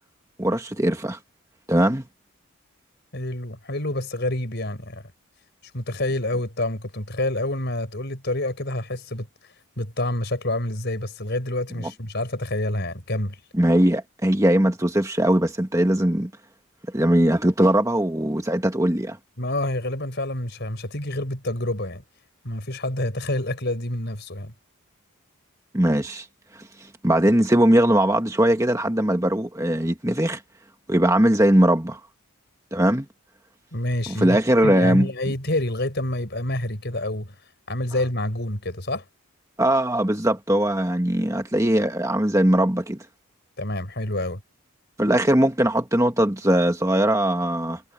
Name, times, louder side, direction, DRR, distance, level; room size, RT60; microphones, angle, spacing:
voice 1, 0.4-1.2 1.7-2.0 11.8-11.9 13.5-16.3 16.9-19.2 25.7-26.3 26.5-26.6 27.0-30.4 30.9-32.0 32.7-33.0 34.1-35.1 39.6-43.0 45.0-47.8, right 1 dB, 15° right, 1.7 m, -20 dB
voice 2, 3.1-5.0 5.7-9.3 9.8-13.4 19.4-22.0 22.4-24.5 33.7-34.4 34.6-37.3 37.7-39.0 43.6-44.4, left 1 dB, 50° left, 5.1 m, -27 dB
head